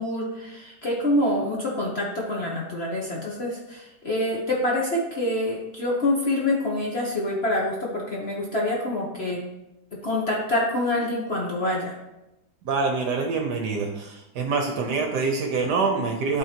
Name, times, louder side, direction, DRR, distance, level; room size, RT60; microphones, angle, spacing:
voice 1, 0.0-9.5 10.0-12.0, left 1 dB, 40° left, -4 dB, 1.1 m, -26 dB
voice 2, 12.6-16.4, right 4 dB, 65° right, 3 dB, 1.2 m, -25 dB
12.0 x 4.1 x 2.9 m, 0.93 s
omnidirectional pair, 2.2 m